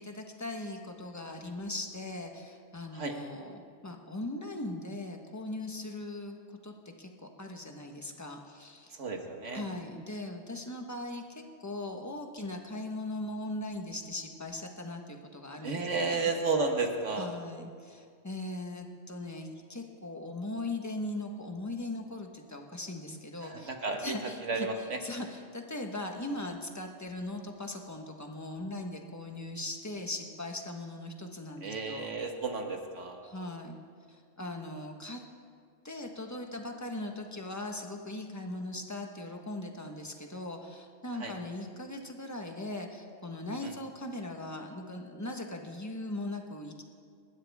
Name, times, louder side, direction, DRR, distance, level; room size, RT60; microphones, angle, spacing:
voice 1, 0.0-6.4 6.6-9.0 9.5-16.3 17.2-23.7 24.0-24.7 25.0-32.1 33.2-33.8 34.4-35.2 35.8-46.8, left 2 dB, 15° left, 3 dB, 1.3 m, -39 dB
voice 2, 8.9-9.6 15.6-17.3 23.4-25.0 31.6-33.2 41.1-41.4 43.6-43.7, right 3 dB, 70° right, 3 dB, 1.9 m, -33 dB
29.0 x 12.5 x 3.6 m, 2.2 s
omnidirectional pair, 1.3 m